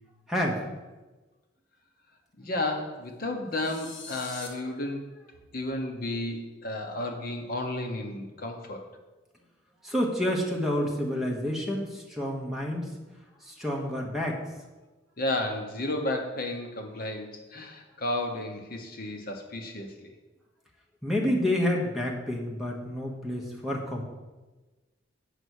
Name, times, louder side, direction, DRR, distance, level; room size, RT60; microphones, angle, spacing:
voice 1, 0.3-0.6 9.8-12.9 13.4-14.4 21.0-24.0, left 1 dB, ahead, -1 dB, 1.2 m, -29 dB
voice 2, 2.4-5.0 5.5-8.9 15.2-20.1, left 1 dB, 50° left, 4 dB, 1.0 m, -32 dB
sound 1, 3.5-4.5, left 4 dB, 70° left, 1.5 m, -43 dB
8.4 x 5.4 x 6.4 m, 1.2 s
head